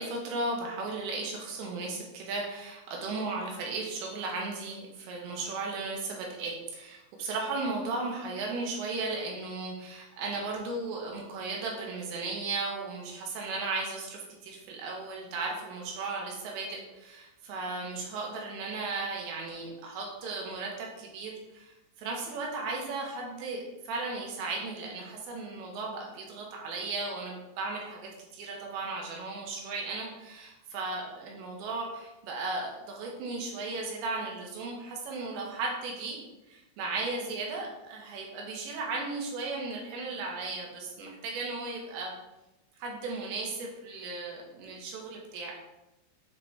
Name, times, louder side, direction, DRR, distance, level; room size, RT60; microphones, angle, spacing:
voice 1, 0.0-36.2 36.5-42.1 42.8-45.5, right 3 dB, 75° right, -1 dB, 3.2 m, -36 dB
7.8 x 3.7 x 3.4 m, 0.97 s
omnidirectional pair, 5.4 m